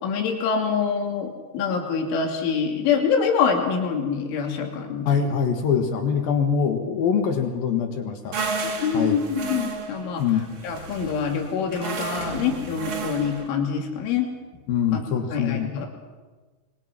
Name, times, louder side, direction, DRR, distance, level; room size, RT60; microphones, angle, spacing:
voice 1, 0.0-5.1 8.8-10.2 10.6-14.3 14.9-15.0 15.3-15.9, left 6 dB, 80° left, 2 dB, 5.1 m, -25 dB
voice 2, 5.1-8.4 8.9-9.2 10.2-10.5 14.7-15.9, left 7 dB, 60° left, 5 dB, 2.9 m, -23 dB
sound 1, 8.3-13.5, right 4 dB, 70° right, 1.2 m, -32 dB
26.5 x 22.5 x 6.1 m, 1.4 s
omnidirectional pair, 5.5 m